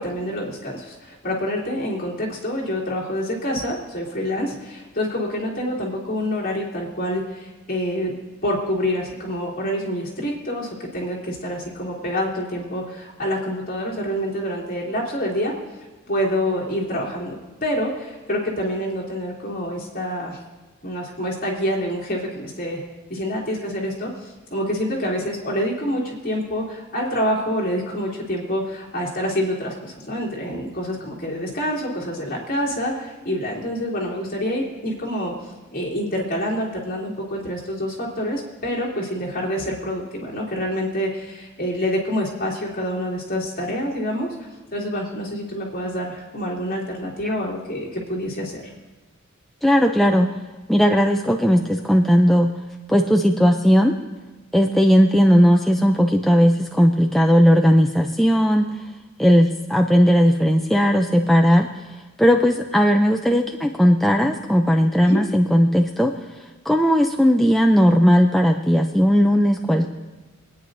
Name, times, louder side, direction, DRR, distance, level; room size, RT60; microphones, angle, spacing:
voice 1, 0.0-8.1 8.4-15.5 16.1-20.4 20.8-22.8 23.1-35.3 35.7-44.3 44.7-48.7 65.0-65.2, equal, 40° left, -5 dB, 2.9 m, -27 dB
voice 2, 49.6-50.3 50.7-52.5 52.9-53.9 54.5-58.7 59.2-61.7 62.2-66.1 66.7-69.9, equal, ahead, 2 dB, 0.4 m, -17 dB
25.5 x 9.3 x 2.6 m, 1.2 s
head